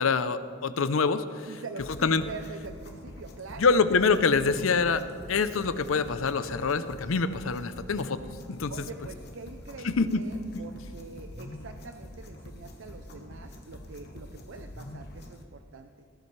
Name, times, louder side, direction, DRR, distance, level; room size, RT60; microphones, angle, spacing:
voice 1, 0.0-1.5 2.0-2.2 3.6-5.0 5.3-8.2 8.5-8.7 9.8-10.3 10.5-10.6, left 4 dB, 80° left, 12 dB, 0.6 m, -25 dB
voice 2, 1.5-3.8 8.7-15.9, right 4 dB, 70° right, 7 dB, 0.5 m, -44 dB
sound 1, 1.8-15.4, left 1 dB, 50° left, 1.2 m, -45 dB
19.0 x 11.5 x 3.3 m, 2.3 s
head